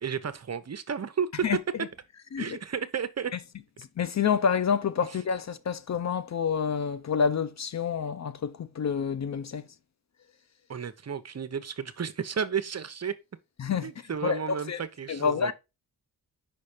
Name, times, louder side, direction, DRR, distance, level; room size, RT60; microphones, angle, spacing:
voice 1, 0.0-1.3 2.4-3.3 10.7-13.1 13.8-15.5, right 7 dB, 40° right, 0.8 m, -33 dB
voice 2, 3.8-9.7 13.6-14.8 15.1-15.5, left 6 dB, 45° left, 0.5 m, -28 dB
5.2 x 4.2 x 4.9 m
cardioid pair, 65°, 40 cm